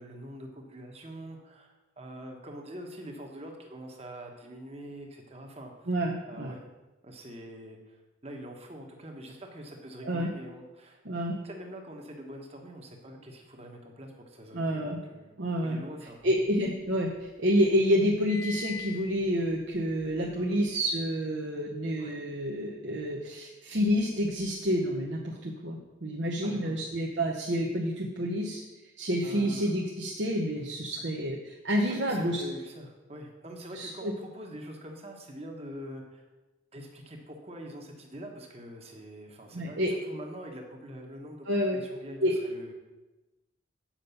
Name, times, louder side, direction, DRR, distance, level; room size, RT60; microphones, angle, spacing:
voice 1, 0.0-5.9 6.3-6.6 7.0-11.0 11.4-15.3 15.6-16.2 20.4-20.6 22.0-22.1 26.4-26.7 29.2-29.8 31.9-36.3 36.7-42.7, equal, 30° right, 2 dB, 1.2 m, -44 dB
voice 2, 5.9-6.5 10.0-10.3 11.1-11.4 14.5-15.0 15.4-15.8 16.2-28.6 29.0-32.4 33.8-34.1 39.5-39.9 41.5-41.8 42.2-42.3, equal, 65° right, -2 dB, 0.9 m, -29 dB
sound 1, 16.2-17.3 17.6-21.0, left 5 dB, 15° left, 0.4 m, -44 dB
7.4 x 5.3 x 6.8 m, 1.1 s
head